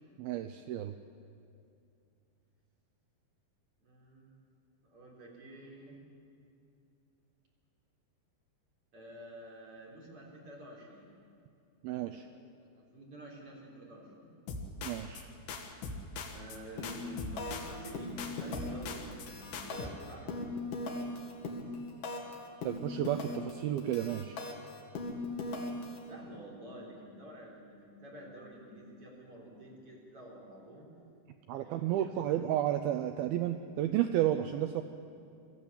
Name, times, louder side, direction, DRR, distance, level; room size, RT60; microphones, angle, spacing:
voice 1, 0.2-0.9 11.8-12.3 14.8-15.3 22.6-24.4 31.5-34.8, right 12 dB, 80° right, 9 dB, 2.2 m, -32 dB
voice 2, 3.8-4.4 4.9-6.0 8.9-11.1 12.2-12.4 12.9-14.3 16.3-20.6 26.0-30.9 31.6-32.3, right 1 dB, 35° right, -3 dB, 4.4 m, -49 dB
sound 1, 14.5-15.2 15.5-16.6 16.8-17.9 18.2-19.3 19.5-19.9, left 4 dB, 80° left, 3.6 m, -41 dB
sound 2, 16.8-17.1 17.4-17.7 18.0-18.8 19.1-22.3 22.6-23.5 23.8-26.0, left 2 dB, 55° left, 3.3 m, -39 dB
22.5 x 14.5 x 8.7 m, 2.5 s
omnidirectional pair, 4.8 m